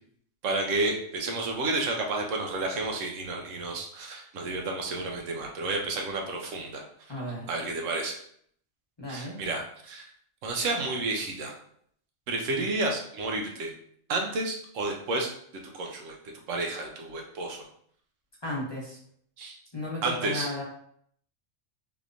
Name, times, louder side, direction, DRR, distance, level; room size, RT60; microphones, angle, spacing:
voice 1, 0.4-6.8 7.5-8.2 9.1-10.1 10.4-11.5 12.3-13.7 14.1-15.3 15.7-16.2 16.5-17.6 19.4-19.6 20.0-20.5, right 2 dB, 90° right, 1 dB, 1.1 m, -31 dB
voice 2, 7.1-7.5 9.0-9.4 12.5-12.6 18.4-19.0 19.7-20.6, left 1 dB, 25° left, -6 dB, 0.8 m, -34 dB
3.4 x 2.9 x 2.5 m, 0.64 s
omnidirectional pair, 1.3 m